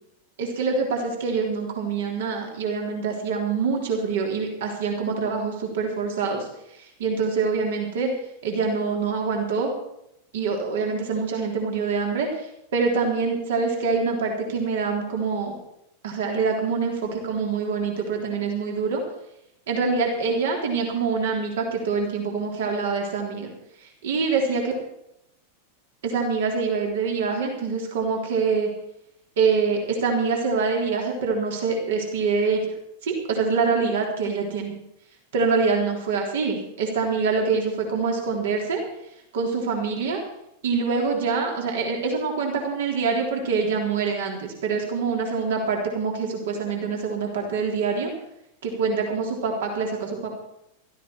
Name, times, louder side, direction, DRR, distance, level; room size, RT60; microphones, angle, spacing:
voice 1, 0.4-6.5 6.7-8.1 8.4-9.7 10.3-12.5 12.7-15.6 16.0-19.0 19.7-23.5 24.0-24.7 26.0-28.7 29.4-32.6 33.0-34.7 35.3-38.8 39.3-40.2 40.6-48.1 48.6-50.4, right 5 dB, 60° right, 1 dB, 3.5 m, -25 dB
16.0 x 14.0 x 4.7 m, 0.79 s
figure-of-eight pair, 90°, 0 cm